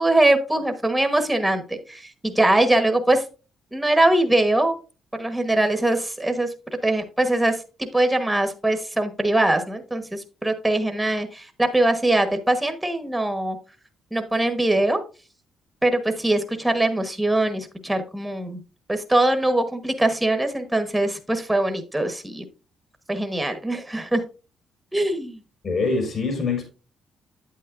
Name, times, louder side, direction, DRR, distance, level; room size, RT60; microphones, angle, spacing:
voice 1, 0.0-3.2 3.7-4.7 5.2-6.5 6.8-13.6 14.1-15.0 15.8-18.6 18.9-22.4 23.1-24.2 24.9-25.4, right 1 dB, 5° right, 1.2 m, -22 dB
voice 2, 25.6-26.7, left 4 dB, 50° left, 4.4 m, -24 dB
8.5 x 8.3 x 2.5 m
cardioid pair, 90°, 0 cm